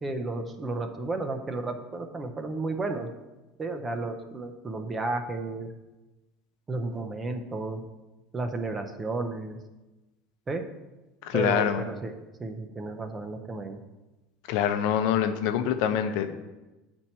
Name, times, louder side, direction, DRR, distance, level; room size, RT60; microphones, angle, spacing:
voice 1, 0.0-3.1 3.6-5.7 6.7-7.8 8.3-9.6 10.5-10.6 11.3-13.8, right 3 dB, 15° right, 6 dB, 0.6 m, -32 dB
voice 2, 11.2-11.8 14.5-16.3, left 9 dB, 65° left, 8 dB, 0.7 m, -25 dB
9.4 x 4.4 x 4.4 m, 1.1 s
cardioid pair, 150°, 0 cm